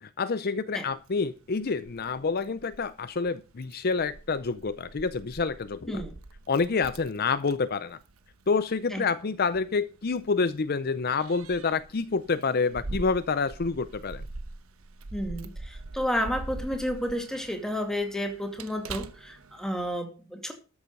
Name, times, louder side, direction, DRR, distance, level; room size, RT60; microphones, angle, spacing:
voice 1, 0.0-6.0 6.5-8.0 8.5-14.2, left 4 dB, 50° left, 13 dB, 0.6 m, -28 dB
Keys jangling, 0.9-20.0, right 2 dB, 90° right, 1.1 m, -44 dB
voice 2, 15.1-20.5, equal, ahead, 4 dB, 2.4 m, -31 dB
13.5 x 7.2 x 5.3 m, 0.34 s
head